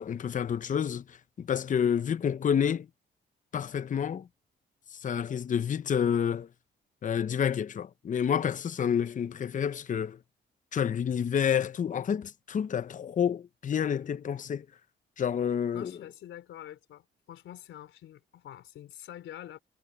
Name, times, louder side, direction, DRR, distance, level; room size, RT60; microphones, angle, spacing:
voice 1, 0.0-2.9 3.5-4.3 5.0-6.5 7.0-10.2 10.7-14.6 15.2-15.9, left 8 dB, 40° left, 0.7 m, -29 dB
voice 2, 15.7-19.6, left 12 dB, 80° left, 3.9 m, -46 dB
cardioid pair, 90°, 20 cm